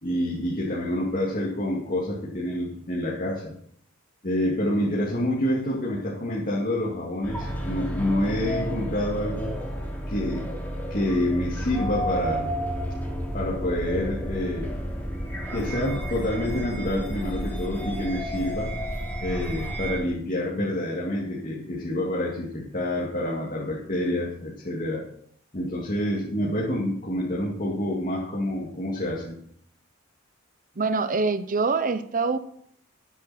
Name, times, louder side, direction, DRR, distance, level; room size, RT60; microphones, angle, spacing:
voice 1, 0.0-3.6 4.2-9.5 10.1-10.5 10.9-12.6 13.3-14.7 15.5-18.7 19.2-25.0 25.5-29.4, left 1 dB, 40° left, -4 dB, 2.5 m, -27 dB
sound 1, 7.2-20.0, equal, 10° left, 3.0 m, -31 dB
voice 2, 30.8-32.4, right 4 dB, 40° right, 11 dB, 0.7 m, -24 dB
13.0 x 10.0 x 4.4 m, 0.66 s
head